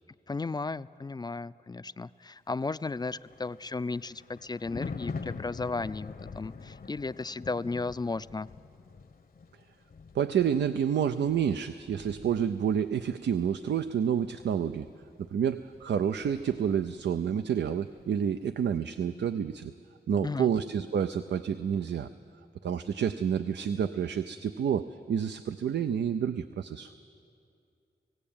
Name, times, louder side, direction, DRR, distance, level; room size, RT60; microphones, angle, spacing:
voice 1, 0.3-8.5 20.1-20.5, left 3 dB, 25° left, 16 dB, 0.4 m, -35 dB
Thunder, 2.9-17.5 17.7-18.0, left 4 dB, 55° left, 0.8 m, -45 dB
voice 2, 10.1-14.9 15.3-19.7 20.1-22.1 22.6-26.9, right 8 dB, 90° right, 10 dB, 0.5 m, -29 dB
18.0 x 16.5 x 8.6 m, 2.5 s
cardioid pair, 60°, 18 cm